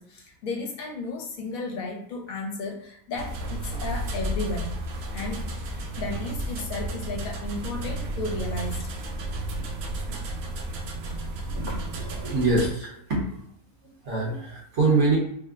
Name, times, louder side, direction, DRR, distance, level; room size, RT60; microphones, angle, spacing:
voice 1, 0.0-4.7 5.1-5.5 6.0-8.9, left 3 dB, 70° left, 1 dB, 1.1 m, -34 dB
sound 1, 3.2-12.7, right 1 dB, 75° right, 0.5 m, -32 dB
voice 2, 11.6-13.3 14.0-15.2, right 3 dB, 55° right, -4 dB, 1.3 m, -25 dB
3.4 x 2.1 x 3.7 m, 0.69 s
omnidirectional pair, 1.6 m